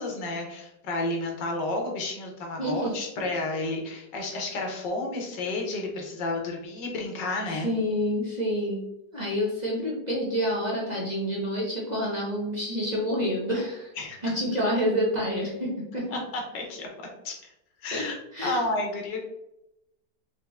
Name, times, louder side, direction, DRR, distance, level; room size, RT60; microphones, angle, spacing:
voice 1, 0.0-7.7 14.0-14.2 16.1-17.4 17.8-18.1 18.4-19.3, left 2 dB, 80° left, 1 dB, 1.7 m, -31 dB
voice 2, 2.6-3.0 7.5-8.8 9.1-13.9 14.2-16.0 17.9-18.1 18.3-18.6, equal, 30° right, -5 dB, 1.0 m, -28 dB
4.7 x 3.2 x 3.5 m, 0.85 s
omnidirectional pair, 1.9 m